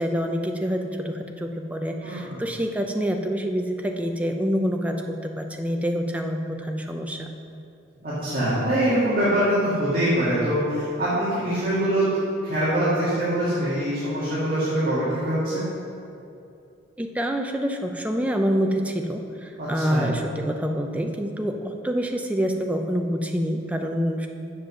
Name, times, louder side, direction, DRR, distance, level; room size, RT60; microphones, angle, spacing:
voice 1, 0.0-7.3 17.0-24.3, equal, 5° right, 3 dB, 0.5 m, -26 dB
voice 2, 2.0-2.4 8.0-12.1 12.4-15.7 19.6-20.1, right 1 dB, 45° right, -12 dB, 2.3 m, -24 dB
7.5 x 7.5 x 6.2 m, 2.6 s
head